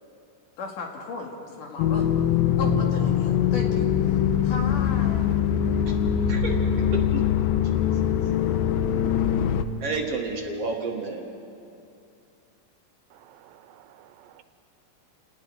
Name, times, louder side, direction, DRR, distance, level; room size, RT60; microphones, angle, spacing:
voice 1, 0.6-2.2 2.6-5.3, left 4 dB, 65° left, 1 dB, 3.5 m, -36 dB
sound 1, 1.8-9.7, left 9 dB, 80° left, 2.5 m, -23 dB
voice 2, 6.9-7.2 9.8-11.3, right 3 dB, 50° right, 0 dB, 2.2 m, -30 dB
voice 3, 13.1-14.4, right 11 dB, 85° right, 10 dB, 2.5 m, -53 dB
29.0 x 19.0 x 4.7 m, 2.6 s
omnidirectional pair, 4.1 m